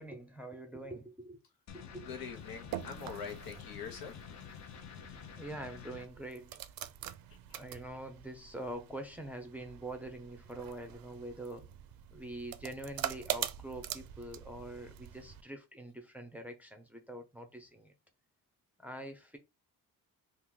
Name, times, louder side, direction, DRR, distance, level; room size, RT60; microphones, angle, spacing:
voice 1, 0.0-1.4 1.7-2.1 5.3-6.6 7.5-11.7 12.1-17.9 18.8-19.4, right 1 dB, 5° right, 0.5 m, -45 dB
sound 1, 1.7-6.1, left 8 dB, 50° left, 0.6 m, -49 dB
voice 2, 2.0-4.2 7.3-7.6, left 6 dB, 80° left, 1.0 m, -44 dB
sound 2, 2.3-15.4, right 12 dB, 75° right, 0.5 m, -44 dB
3.0 x 2.5 x 3.7 m
cardioid pair, 150°, 35 cm